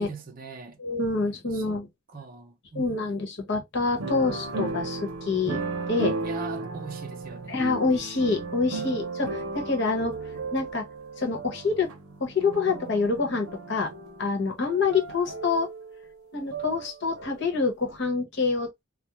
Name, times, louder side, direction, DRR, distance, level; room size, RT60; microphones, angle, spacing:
voice 1, 0.0-0.8 1.5-1.8 2.1-2.9 6.2-7.7 8.7-9.0, right 4 dB, 40° right, 0.5 m, -40 dB
voice 2, 0.8-1.9 2.7-5.6 5.9-6.1 7.5-10.2 10.5-10.8 11.2-11.9 12.2-13.9 14.2-15.7 16.3-18.7, left 4 dB, 55° left, 0.9 m, -26 dB
sound 1, 4.0-17.6 17.9-18.0, right 3 dB, 85° right, 0.7 m, -35 dB
2.3 x 2.0 x 2.9 m
head